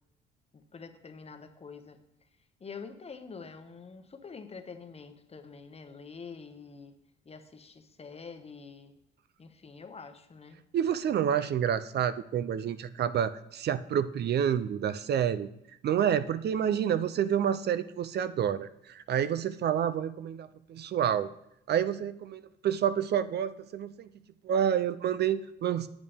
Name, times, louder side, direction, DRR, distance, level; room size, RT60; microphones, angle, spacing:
voice 1, 0.5-2.0 2.6-6.9 7.2-8.9 9.4-10.6, left 5 dB, 30° left, 8 dB, 0.9 m, -46 dB
voice 2, 10.7-15.5 15.8-21.3 21.7-24.1 24.4-25.9, right 9 dB, 55° right, 14 dB, 0.5 m, -28 dB
8.9 x 8.4 x 3.5 m, 0.80 s
cardioid pair, 90°, 20 cm